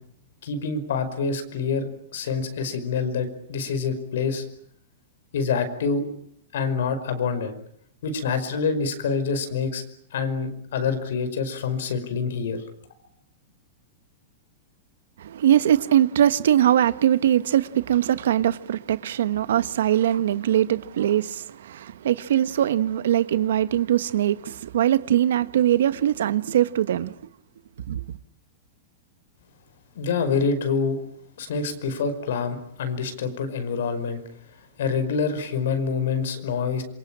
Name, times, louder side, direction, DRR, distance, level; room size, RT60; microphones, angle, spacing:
voice 1, 0.4-4.4 5.3-6.0 6.5-7.5 8.0-9.8 10.1-12.6 29.9-31.0 31.4-34.2 34.8-36.8, left 5 dB, 80° left, 5.2 m, -26 dB
voice 2, 15.2-27.2 27.9-28.0, right 11 dB, 80° right, 1.4 m, -21 dB
27.0 x 24.0 x 9.0 m
supercardioid pair, 155°, 0 cm